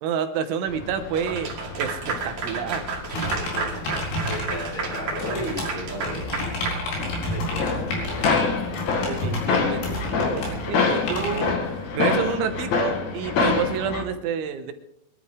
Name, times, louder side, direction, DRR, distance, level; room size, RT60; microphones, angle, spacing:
voice 1, 0.0-1.5 1.8-2.9 9.1-11.6 11.9-14.7, right 7 dB, 75° right, 8 dB, 3.1 m, -28 dB
sound 1, 0.7-14.0, left 5 dB, 75° left, 1.7 m, -28 dB
Clapping / Applause, 1.1-7.5, right 4 dB, 45° right, 3.2 m, -32 dB
sound 2, 3.1-11.4, left 1 dB, 60° left, 6.1 m, -31 dB
voice 2, 3.1-6.4 6.7-9.0, left 1 dB, 20° left, -1 dB, 4.6 m, -36 dB
23.0 x 12.0 x 3.6 m, 0.78 s
omnidirectional pair, 6.0 m